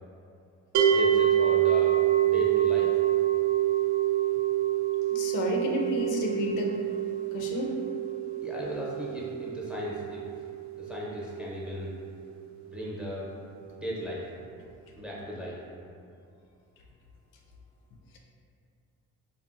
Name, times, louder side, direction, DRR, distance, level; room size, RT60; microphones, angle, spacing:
sound 1, 0.7-11.9, right 11 dB, 65° right, 0.5 m, -27 dB
voice 1, 0.9-2.0 2.2-2.9 8.4-10.2 10.8-11.9 12.6-13.3 13.6-14.2 14.9-15.6, left 1 dB, 5° right, -6 dB, 0.7 m, -36 dB
voice 2, 5.1-6.7 7.3-7.7, left 2 dB, 80° left, 0 dB, 0.5 m, -30 dB
3.6 x 2.1 x 2.4 m, 2.4 s
cardioid pair, 90°, 30 cm